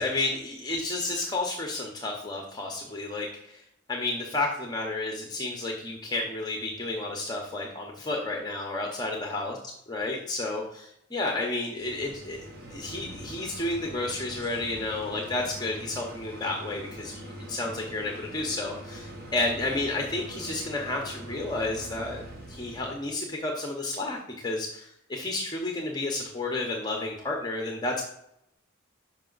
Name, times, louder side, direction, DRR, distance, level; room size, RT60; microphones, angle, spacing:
voice 1, 0.0-3.6 3.9-9.6 9.9-28.0, left 2 dB, 20° left, 0 dB, 0.7 m, -31 dB
sound 1, 11.8-23.1, equal, 50° right, 1.2 m, -43 dB
5.7 x 5.5 x 3.9 m, 0.78 s
head